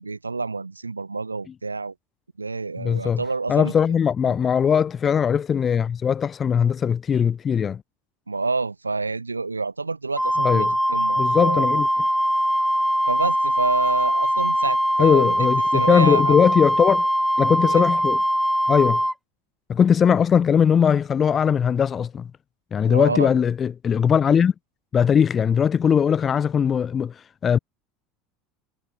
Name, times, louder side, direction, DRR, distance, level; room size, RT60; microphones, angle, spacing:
voice 1, 0.0-1.9 2.4-3.7 8.3-11.8 13.1-16.4 17.6-17.9 22.9-23.3, right 3 dB, 85° right, 2.1 m, -28 dB
voice 2, 2.8-3.2 3.5-7.8 10.4-10.7 11.2-11.9 15.0-17.1 17.4-18.2 18.7-19.0 19.7-22.3 22.7-24.5 24.9-27.6, left 7 dB, 30° left, 1.1 m, -20 dB
Wind instrument woodwind instrument, 10.2-19.1, equal, ahead, 1.2 m, -22 dB
figure-of-eight pair, 70°, 0 cm